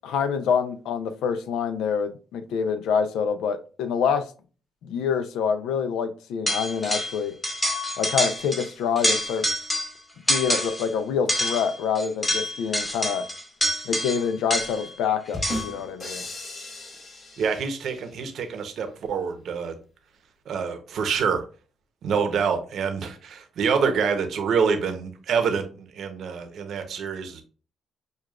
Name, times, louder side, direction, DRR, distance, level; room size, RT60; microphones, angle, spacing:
voice 1, 0.0-4.2 4.8-7.3 8.0-9.4 10.3-13.2 13.9-16.2, left 6 dB, 85° left, 10 dB, 0.5 m, -26 dB
sound 1, 6.5-7.2 7.4-8.7 9.0-10.0 10.3-10.9 11.3-14.9 15.4-15.8, left 1 dB, 15° left, 1.1 m, -27 dB
sound 2, 15.3-18.2, left 1 dB, 45° left, 1.3 m, -36 dB
voice 2, 17.4-19.8 20.5-21.4 22.0-27.4, right 6 dB, 70° right, 6 dB, 0.8 m, -26 dB
6.4 x 2.3 x 2.4 m, 0.37 s
cardioid pair, 90°, 0 cm